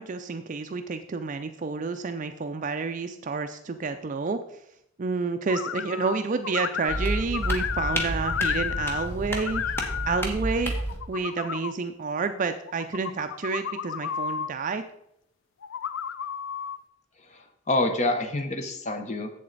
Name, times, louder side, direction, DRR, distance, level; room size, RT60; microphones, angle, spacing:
voice 1, 0.0-4.4 5.0-9.6 10.1-10.7 11.1-14.8, right 4 dB, 40° right, 8 dB, 0.4 m, -29 dB
sound 1, 5.5-6.2 6.4-9.1 9.3-10.2 10.8-11.7 12.7-14.5 15.6-16.8, left 8 dB, 65° left, 0.3 m, -32 dB
sound 2, 6.9-11.0, right 1 dB, 10° left, 1.2 m, -31 dB
voice 2, 17.3-19.3, left 2 dB, 35° left, 6 dB, 0.8 m, -27 dB
7.6 x 7.4 x 3.9 m, 0.77 s
head